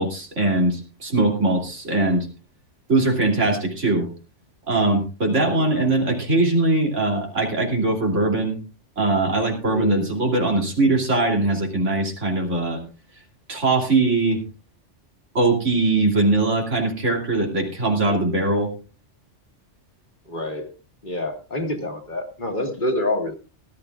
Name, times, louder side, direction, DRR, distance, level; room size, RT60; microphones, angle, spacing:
voice 1, 0.0-2.3 2.9-4.1 4.7-8.6 9.0-12.8 13.5-14.4 15.3-18.7, right 2 dB, 90° right, 1 dB, 3.3 m, -21 dB
voice 2, 9.7-10.1 20.3-20.7 21.0-23.3, left 1 dB, 45° left, 4 dB, 1.9 m, -26 dB
18.5 x 12.0 x 2.4 m, 0.32 s
omnidirectional pair, 1.2 m